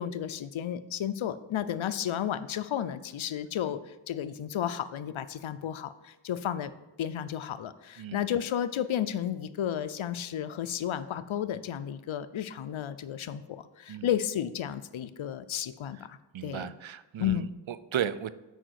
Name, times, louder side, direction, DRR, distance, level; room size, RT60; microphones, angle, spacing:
voice 1, 0.0-6.7 7.0-16.2 16.4-16.7 17.2-17.5, left 10 dB, 80° left, 12 dB, 0.6 m, -32 dB
voice 2, 16.3-18.3, right 10 dB, 75° right, 15 dB, 0.6 m, -35 dB
6.4 x 5.0 x 6.3 m, 1.1 s
cardioid pair, 40°, 47 cm